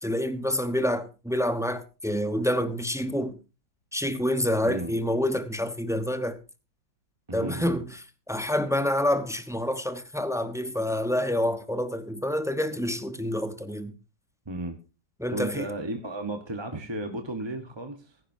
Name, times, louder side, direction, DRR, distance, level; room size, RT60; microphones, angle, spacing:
voice 1, 0.0-3.4 3.9-6.4 7.3-7.8 8.3-13.9 15.2-15.7, left 1 dB, 5° right, 0.6 m, -27 dB
voice 2, 7.3-7.8 14.5-14.8 15.3-18.2, right 2 dB, 20° right, 0.9 m, -34 dB
15.5 x 15.0 x 2.7 m
omnidirectional pair, 1.9 m